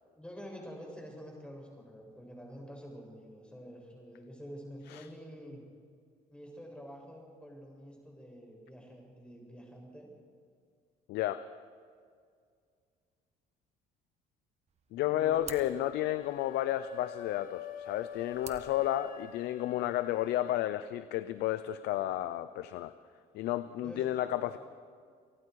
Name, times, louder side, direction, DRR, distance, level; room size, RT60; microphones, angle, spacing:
voice 1, 0.1-5.6 6.3-10.1 15.0-15.7 19.8-20.0 23.8-24.6, equal, 5° left, -1 dB, 7.5 m, -48 dB
voice 2, 11.1-11.4 14.9-22.9 23.3-24.6, left 13 dB, 80° left, 12 dB, 0.7 m, -32 dB
sound 1, 14.7-19.7, right 6 dB, 40° right, 1.6 m, -53 dB
sound 2, 15.7-20.7, left 9 dB, 55° left, 1.4 m, -47 dB
29.0 x 18.5 x 4.8 m, 2.1 s
cardioid pair, 110°, 17 cm